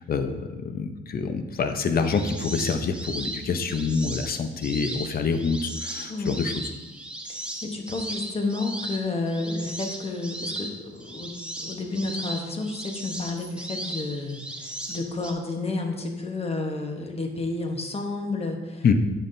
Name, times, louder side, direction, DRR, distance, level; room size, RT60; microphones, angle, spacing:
voice 1, 0.0-6.5 18.8-18.9, left 5 dB, 50° left, 7 dB, 0.7 m, -26 dB
sound 1, 2.0-15.3, right 1 dB, 5° right, 0.7 m, -37 dB
voice 2, 6.1-6.4 7.3-11.3 11.6-18.9, left 3 dB, 30° left, 3 dB, 1.1 m, -31 dB
8.8 x 5.7 x 2.7 m, 1.1 s
cardioid pair, 90°, 20 cm